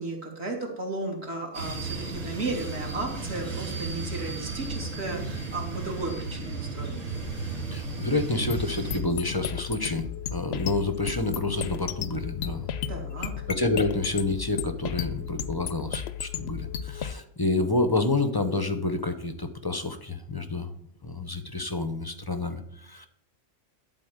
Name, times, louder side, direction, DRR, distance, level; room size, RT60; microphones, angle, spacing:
voice 1, 0.0-7.1 12.9-13.3, right 2 dB, 50° right, 0 dB, 2.4 m, -34 dB
sound 1, 1.5-9.0, right 3 dB, 70° right, 2.6 m, -34 dB
voice 2, 7.7-12.7 13.2-20.7 21.0-23.1, left 2 dB, 25° left, 9 dB, 0.6 m, -29 dB
sound 2, 8.5-17.1, left 8 dB, 60° left, 0.8 m, -34 dB
12.0 x 4.3 x 8.0 m, 0.74 s
omnidirectional pair, 1.4 m